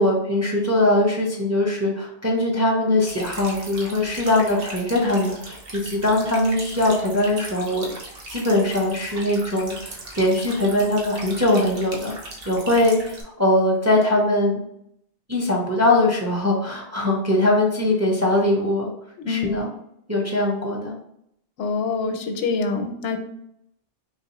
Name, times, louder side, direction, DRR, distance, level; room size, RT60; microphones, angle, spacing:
voice 1, 0.0-7.9 8.3-12.1 12.5-14.6 15.3-18.9 19.3-19.7 20.1-20.9, left 1 dB, 20° right, -2 dB, 0.5 m, -21 dB
sound 1, 3.0-13.2, right 2 dB, 60° right, 1.0 m, -38 dB
voice 2, 19.2-19.6 21.6-23.2, left 4 dB, 85° left, 6 dB, 0.9 m, -25 dB
4.1 x 3.0 x 2.9 m, 0.74 s
omnidirectional pair, 1.2 m